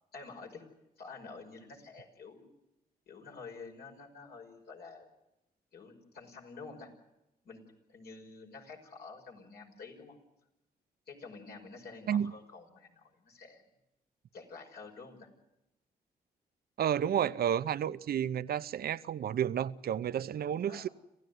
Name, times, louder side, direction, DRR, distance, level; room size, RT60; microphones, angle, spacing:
voice 1, 0.1-0.6 1.0-2.5 3.1-5.1 5.7-6.9 7.4-7.6 7.9-10.2 11.1-13.7 14.3-15.3 20.7-20.9, left 4 dB, 75° left, 5.8 m, -49 dB
voice 2, 16.8-20.9, right 9 dB, 70° right, 0.8 m, -31 dB
27.0 x 16.0 x 9.5 m
cardioid pair, 75°, 17 cm